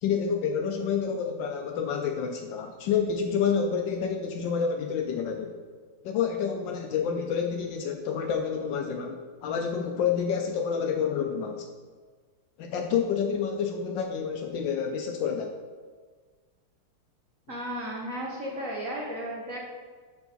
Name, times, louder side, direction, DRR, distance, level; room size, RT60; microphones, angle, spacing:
voice 1, 0.0-5.5 6.0-11.7 12.6-15.6, left 6 dB, 75° left, 4 dB, 1.1 m, -28 dB
voice 2, 17.5-19.6, equal, 55° right, -3 dB, 1.0 m, -34 dB
6.9 x 4.6 x 4.0 m, 1.5 s
omnidirectional pair, 2.3 m